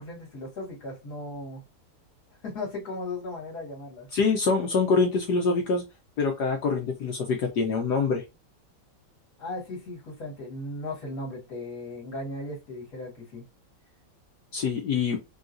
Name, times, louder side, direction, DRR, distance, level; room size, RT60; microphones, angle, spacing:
voice 1, 0.0-1.6 2.4-4.1 9.4-13.4, left 2 dB, 50° left, -2 dB, 1.9 m, -37 dB
voice 2, 4.1-5.8 6.2-8.2 14.5-15.2, left 4 dB, 65° left, 2 dB, 1.1 m, -25 dB
3.7 x 2.4 x 2.5 m, 0.24 s
omnidirectional pair, 2.2 m